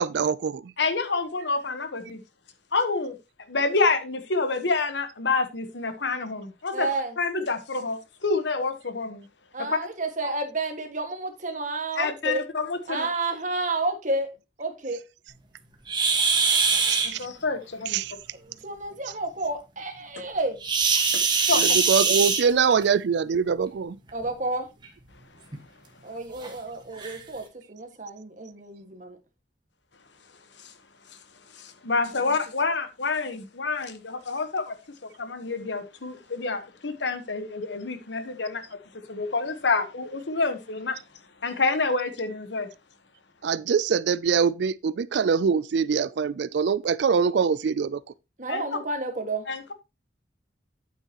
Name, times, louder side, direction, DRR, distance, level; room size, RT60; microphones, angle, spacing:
voice 1, 0.0-0.7 16.9-17.3 17.9-18.1 21.6-24.0 43.4-48.0, right 6 dB, 70° right, 0.4 m, -24 dB
voice 2, 0.8-2.2 2.7-3.2 3.5-6.9 7.2-9.2 9.6-9.8 10.2-10.3 12.0-13.1 17.2-18.0 21.1-21.8 30.6-30.7 31.5-34.8 35.0-38.6 38.9-41.0 41.4-42.7 48.5-48.6 49.5-49.7, left 3 dB, 75° left, 1.2 m, -28 dB
voice 3, 6.7-7.1 9.5-12.4 12.9-14.3 14.6-15.0 18.3-20.6 24.1-24.7 26.0-29.2 32.2-32.4 48.4-49.4, right 2 dB, 45° right, 1.8 m, -30 dB
sound 1, 15.9-17.1 20.6-22.9 24.1-24.3 24.8-24.9 25.5-25.6 26.4-26.5 27.0-27.2, right 5 dB, 25° right, 1.5 m, -22 dB
9.0 x 8.2 x 2.9 m
head